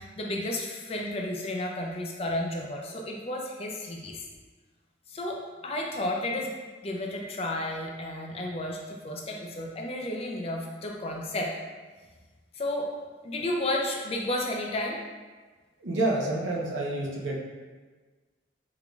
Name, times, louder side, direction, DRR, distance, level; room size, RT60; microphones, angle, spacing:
voice 1, 0.0-4.2 5.1-6.6 6.8-11.5 12.5-12.9 13.2-15.0, left 1 dB, 30° left, 0 dB, 0.4 m, -32 dB
voice 2, 15.8-17.4, right 2 dB, 75° right, -4 dB, 0.8 m, -28 dB
3.7 x 3.5 x 2.3 m, 1.4 s
head